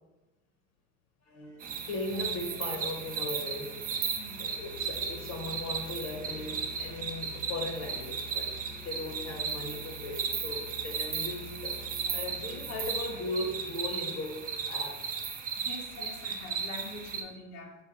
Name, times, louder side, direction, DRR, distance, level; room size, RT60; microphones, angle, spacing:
voice 1, 1.2-3.8 4.4-8.5 8.8-11.8 12.0-15.0, left 2 dB, 40° left, 2 dB, 0.8 m, -38 dB
sound 1, 1.6-17.2, right 6 dB, 20° right, 0.5 m, -36 dB
Musical instrument, 2.1-13.9, left 3 dB, 85° right, 0.9 m, -49 dB
voice 2, 4.2-4.5 15.6-17.7, left 3 dB, 70° left, 0 dB, 0.9 m, -45 dB
6.1 x 2.2 x 3.8 m, 1.1 s
hypercardioid pair, 105°, 42 cm